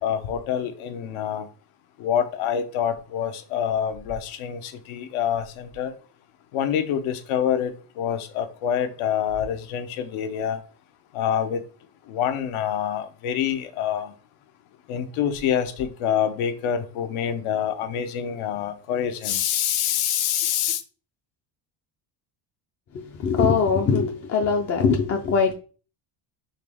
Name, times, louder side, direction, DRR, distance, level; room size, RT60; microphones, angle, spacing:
voice 1, 0.0-1.5 2.0-5.9 6.5-10.6 11.1-11.6 12.1-14.1 14.9-20.8, left 9 dB, 75° left, 0.8 m, -26 dB
voice 2, 22.9-25.5, left 5 dB, 30° left, 0.4 m, -22 dB
4.0 x 3.0 x 3.4 m
cardioid pair, 140°, 50 cm